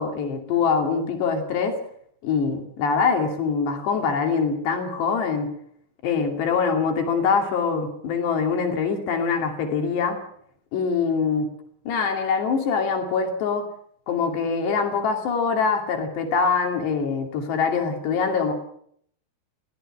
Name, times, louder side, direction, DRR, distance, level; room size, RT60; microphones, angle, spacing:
voice 1, 0.0-1.8 2.2-5.5 6.0-10.2 10.7-11.5 11.9-13.7 14.1-18.5, left 5 dB, 80° left, 4 dB, 4.7 m, -24 dB
21.0 x 16.5 x 7.8 m, 0.66 s
omnidirectional pair, 4.9 m